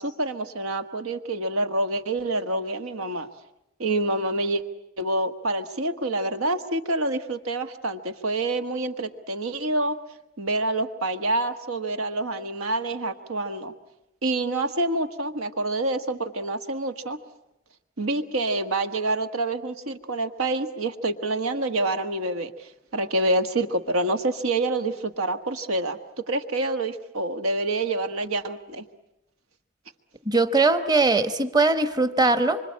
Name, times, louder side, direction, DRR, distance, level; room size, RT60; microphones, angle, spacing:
voice 1, 0.0-3.3 3.8-4.6 5.0-10.0 10.4-13.7 14.2-17.2 18.0-28.8, right 2 dB, 85° right, 9 dB, 1.6 m, -27 dB
voice 2, 30.3-32.6, right 3 dB, 20° right, 11 dB, 1.0 m, -21 dB
26.0 x 25.5 x 8.6 m, 0.85 s
head